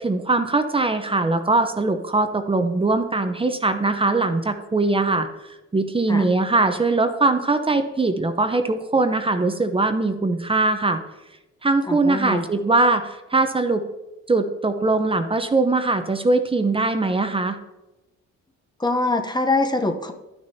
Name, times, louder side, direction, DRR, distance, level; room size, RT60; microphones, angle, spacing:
voice 1, 0.0-5.3 5.7-11.0 11.6-13.8 14.3-17.6, right 3 dB, 20° right, 8 dB, 0.7 m, -21 dB
voice 2, 11.9-12.4 18.8-20.1, left 2 dB, 15° left, 6 dB, 0.8 m, -23 dB
12.0 x 6.5 x 2.7 m, 1.0 s
cardioid pair, 90°, 30 cm